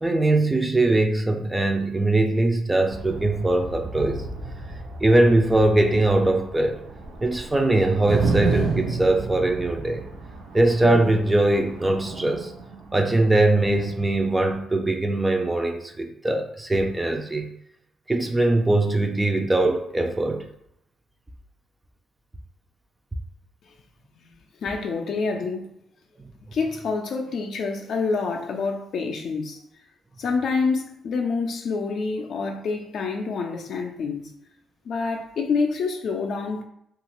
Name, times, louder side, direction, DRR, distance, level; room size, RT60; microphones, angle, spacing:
voice 1, 0.0-4.2 5.0-6.8 7.2-10.0 10.5-12.5 12.9-17.5 18.1-20.5, right 2 dB, 15° right, 5 dB, 0.4 m, -21 dB
sound 1, 2.9-14.6, right 4 dB, 85° right, 0.5 m, -32 dB
voice 2, 24.6-25.7 26.5-29.6 30.2-34.3 34.9-36.6, left 4 dB, 65° left, 2 dB, 0.4 m, -27 dB
2.8 x 2.4 x 2.9 m, 0.75 s
cardioid pair, 90°, 0 cm